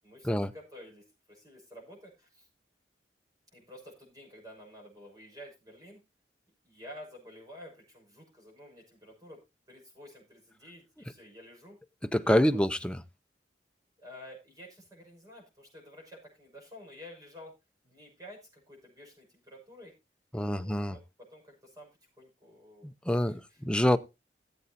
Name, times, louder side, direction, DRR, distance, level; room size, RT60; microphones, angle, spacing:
voice 1, 0.0-2.5 3.5-6.0 6.6-9.4 9.7-11.8 12.2-12.6 14.0-17.5 17.8-19.9 20.4-21.9 22.2-23.6, left 1 dB, 20° right, 6.2 m, -51 dB
voice 2, 12.1-13.0 20.3-21.0 22.8-24.0, left 1 dB, 5° left, 0.5 m, -26 dB
18.0 x 8.0 x 2.7 m
head